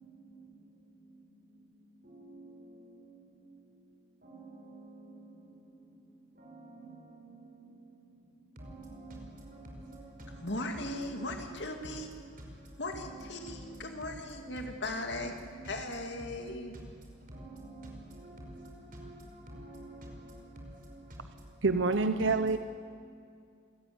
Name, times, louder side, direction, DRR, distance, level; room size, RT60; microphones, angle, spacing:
voice 1, 0.0-0.4 2.0-2.7 3.1-3.2 4.2-5.4 6.4-7.5 7.8-7.9 8.6-10.5 13.4-13.9 17.3-21.0, right 1 dB, 45° right, 0 dB, 5.4 m, -48 dB
voice 2, 10.4-12.1 12.8-15.4 15.6-16.7, left 2 dB, 60° left, 4 dB, 2.5 m, -38 dB
voice 3, 21.6-22.6, right 3 dB, 70° right, 10 dB, 0.8 m, -26 dB
27.0 x 15.0 x 9.6 m, 2.3 s
head